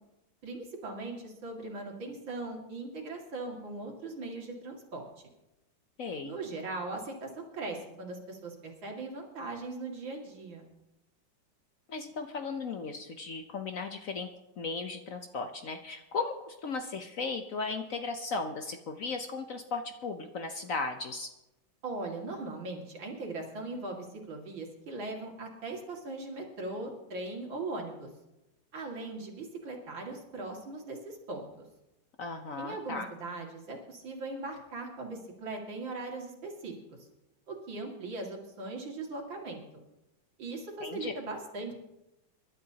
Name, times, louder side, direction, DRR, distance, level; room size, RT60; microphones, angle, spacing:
voice 1, 0.4-5.0 6.2-10.7 21.8-28.1 28.7-31.5 32.6-36.7 37.5-39.6 40.4-41.7, right 2 dB, 80° right, 0 dB, 3.0 m, -39 dB
voice 2, 6.0-6.3 11.9-14.3 14.6-21.3 32.2-33.1 40.8-41.1, left 4 dB, 55° left, 6 dB, 1.0 m, -36 dB
25.5 x 11.5 x 2.8 m, 0.95 s
omnidirectional pair, 2.1 m